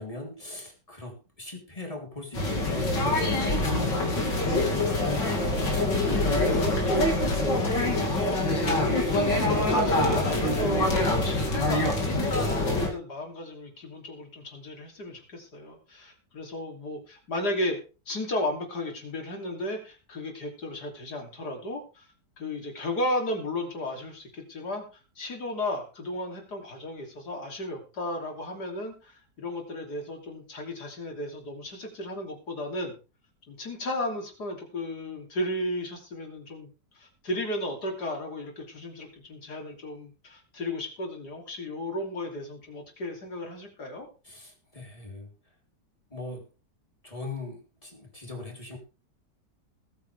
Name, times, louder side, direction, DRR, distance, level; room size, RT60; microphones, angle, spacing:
voice 1, 0.0-4.5 44.2-45.3 46.1-46.5 47.0-48.8, left 2 dB, 20° left, 1 dB, 3.6 m, -40 dB
sound 1, 2.3-12.9, left 2 dB, 80° left, 3.3 m, -25 dB
voice 2, 5.7-8.4 8.9-17.8 18.1-22.0 22.4-24.8 25.2-32.9 33.5-44.1, left 1 dB, 65° left, 3 dB, 3.6 m, -34 dB
20.0 x 8.9 x 3.5 m, 0.33 s
omnidirectional pair, 1.9 m